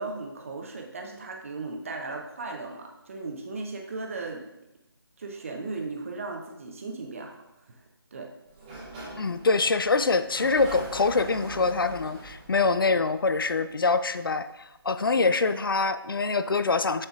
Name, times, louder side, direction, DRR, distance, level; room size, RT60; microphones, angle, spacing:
voice 1, 0.0-4.5 5.2-7.4 7.7-7.8 8.1-8.3, right 3 dB, 35° right, 2 dB, 0.8 m, -36 dB
Sliding door, 8.5-14.1, right 2 dB, 10° right, 1.1 m, -42 dB
voice 2, 9.2-17.1, left 4 dB, 60° left, 11 dB, 0.4 m, -25 dB
7.3 x 6.6 x 2.4 m, 0.89 s
figure-of-eight pair, 155°, 13 cm